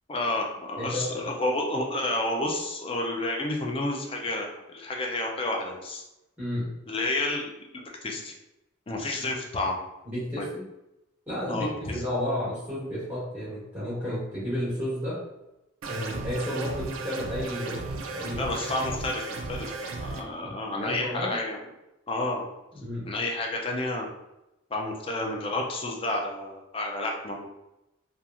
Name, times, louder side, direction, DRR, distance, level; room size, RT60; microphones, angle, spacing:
voice 1, 0.1-6.0 6.9-8.3 8.9-9.8 10.4-10.5 11.5-11.9 18.3-19.2 19.5-21.6 22.1-22.5 23.1-24.1 24.7-27.5, left 2 dB, 25° left, 1 dB, 0.3 m, -30 dB
voice 2, 0.8-1.2 6.4-6.7 10.0-10.7 11.3-11.7 11.9-15.2 15.8-17.8 18.1-18.4 20.4-20.5 20.8-21.4 22.7-23.1, left 1 dB, 10° right, -11 dB, 1.0 m, -32 dB
sound 1, 15.8-20.2, right 3 dB, 85° right, 0.4 m, -35 dB
2.8 x 2.3 x 2.4 m, 0.93 s
head